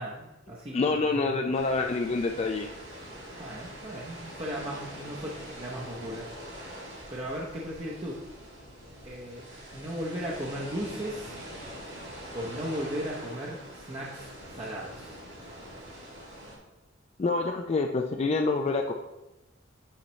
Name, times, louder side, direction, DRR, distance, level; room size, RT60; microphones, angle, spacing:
voice 1, 0.0-1.4 3.4-6.3 6.7-8.2 9.0-11.3 12.3-15.1, equal, 30° right, -4 dB, 0.7 m, -37 dB
voice 2, 0.7-2.7 17.2-18.9, left 3 dB, 30° left, 4 dB, 0.3 m, -27 dB
sound 1, 1.5-16.6, equal, 60° right, 2.2 m, -44 dB
8.7 x 4.3 x 3.1 m, 0.99 s
head